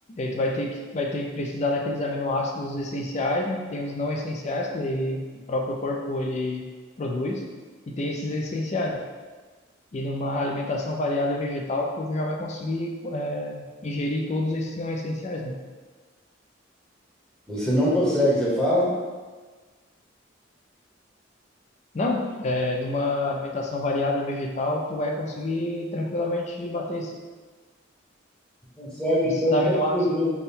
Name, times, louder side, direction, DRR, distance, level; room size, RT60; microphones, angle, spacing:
voice 1, 0.1-6.7 7.0-7.5 7.9-9.1 9.9-15.6 21.9-27.2 29.2-29.9, left 1 dB, 35° left, 1 dB, 0.3 m, -28 dB
voice 2, 17.5-19.0 28.8-30.3, left 1 dB, 5° left, -8 dB, 0.8 m, -23 dB
3.5 x 2.2 x 4.2 m, 1.4 s
head